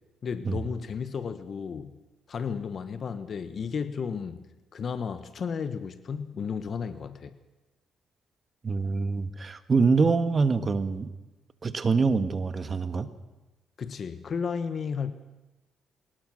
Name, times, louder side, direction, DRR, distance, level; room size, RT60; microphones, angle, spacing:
voice 1, 0.2-1.9 2.3-7.4 13.8-15.1, left 6 dB, 50° left, 12 dB, 1.2 m, -33 dB
voice 2, 8.6-11.1 11.6-13.1, right 4 dB, 35° right, 11 dB, 1.5 m, -25 dB
22.0 x 19.5 x 6.4 m, 1.1 s
cardioid pair, 90°, 0 cm